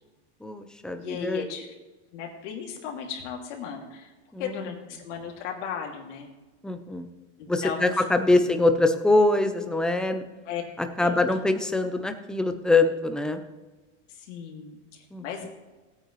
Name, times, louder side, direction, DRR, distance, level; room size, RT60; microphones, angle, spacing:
voice 1, 0.4-1.4 4.3-4.6 6.6-7.1 7.5-10.2 10.8-13.4 15.1-15.5, left 2 dB, ahead, 7 dB, 0.5 m, -24 dB
voice 2, 1.0-1.7 2.1-4.1 4.4-6.3 7.4-8.4 10.5-10.6 11.0-11.2 14.1-15.5, left 7 dB, 75° left, 1 dB, 2.6 m, -36 dB
17.0 x 9.0 x 3.2 m, 1.2 s
supercardioid pair, 150°, 36 cm